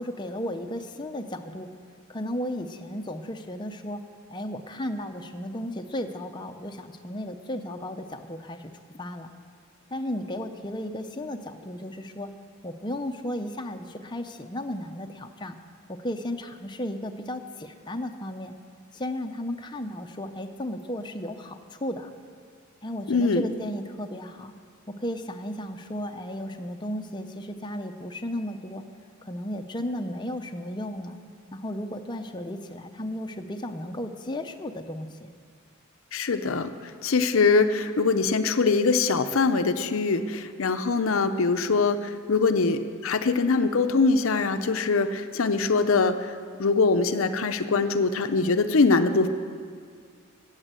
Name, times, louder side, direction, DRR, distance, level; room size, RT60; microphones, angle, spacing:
voice 1, 0.0-1.7 2.1-4.0 4.3-9.3 9.9-12.3 12.6-15.6 15.9-18.5 18.9-22.1 22.8-24.5 24.9-28.8 29.2-31.2 31.5-35.3, left 1 dB, 20° left, 5 dB, 0.6 m, -34 dB
voice 2, 23.1-23.4 36.1-49.3, left 4 dB, 65° left, 10 dB, 0.6 m, -23 dB
14.5 x 8.9 x 7.6 m, 2.2 s
head